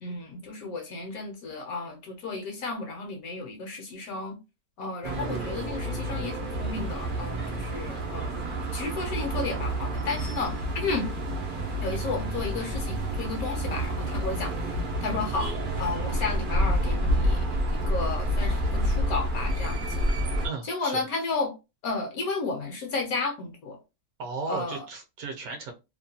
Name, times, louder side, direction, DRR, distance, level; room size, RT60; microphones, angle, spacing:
voice 1, 0.0-4.4 4.8-8.5 8.7-11.1 11.8-17.5 17.9-20.0 20.7-21.5 21.8-23.8 24.5-24.8, left 3 dB, 65° left, 1.0 m, -33 dB
sound 1, 5.0-20.5, equal, 85° right, 0.4 m, -29 dB
voice 2, 20.4-21.0 24.2-25.7, right 3 dB, 70° right, 1.0 m, -35 dB
2.8 x 2.2 x 2.6 m
omnidirectional pair, 1.8 m